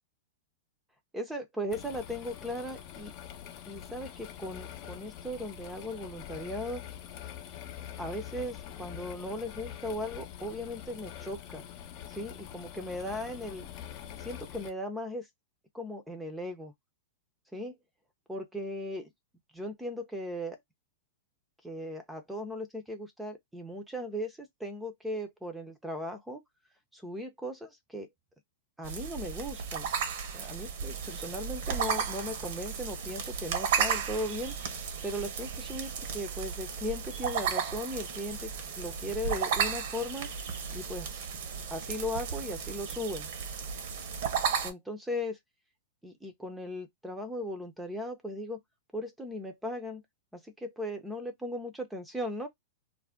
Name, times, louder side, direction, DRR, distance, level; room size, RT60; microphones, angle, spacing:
voice 1, 1.1-3.1 3.7-6.8 8.0-11.6 12.1-13.7 14.2-15.3 15.7-16.7 17.5-17.7 18.3-19.1 19.5-20.6 21.6-26.4 26.9-28.1 28.8-29.9 30.3-34.8 35.0-38.5 38.8-40.3 40.7-41.3 41.7-43.3 44.6-45.4 46.0-48.6 48.9-50.0 50.3-52.5, left 1 dB, 5° right, 0.6 m, -37 dB
sound 1, 1.7-14.7, left 10 dB, 45° left, 0.6 m, -45 dB
sound 2, 28.8-44.7, right 6 dB, 65° right, 0.8 m, -34 dB
2.4 x 2.1 x 3.4 m
hypercardioid pair, 130°, 0 cm